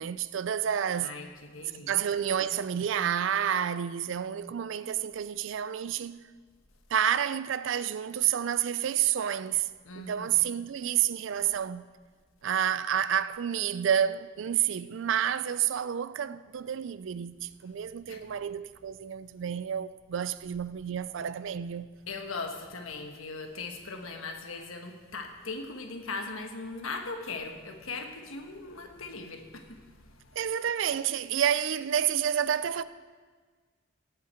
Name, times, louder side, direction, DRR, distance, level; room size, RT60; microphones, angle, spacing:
voice 1, 0.0-1.2 1.7-6.3 6.9-9.7 10.0-11.9 12.4-21.9 30.4-32.8, right 9 dB, 65° right, 0.4 m, -29 dB
voice 2, 1.0-1.9 9.8-10.5 18.1-18.2 22.1-29.9, left 3 dB, 80° left, 1.3 m, -39 dB
17.5 x 7.6 x 4.4 m
head